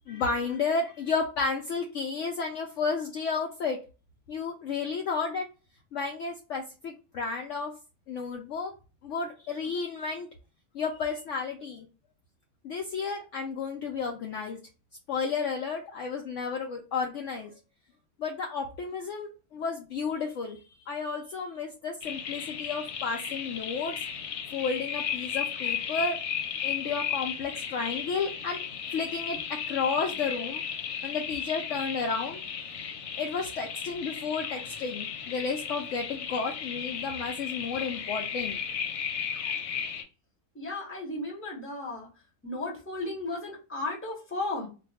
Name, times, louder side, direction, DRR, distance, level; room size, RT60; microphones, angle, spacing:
voice 1, 0.1-3.8 4.3-5.5 5.9-7.7 8.1-8.7 9.0-10.3 10.7-11.9 12.6-14.6 15.1-17.5 18.2-23.9 24.5-26.2 26.6-28.6 28.9-29.4 29.7-30.6 31.0-32.4 33.2-38.6, left 5 dB, 65° left, 2 dB, 0.8 m, -32 dB
sound 1, 22.0-40.0, left 8 dB, 85° left, 1.2 m, -35 dB
voice 2, 40.5-42.1 42.4-44.7, left 2 dB, 10° left, -2 dB, 0.9 m, -34 dB
2.5 x 2.3 x 4.0 m, 0.32 s
omnidirectional pair, 1.6 m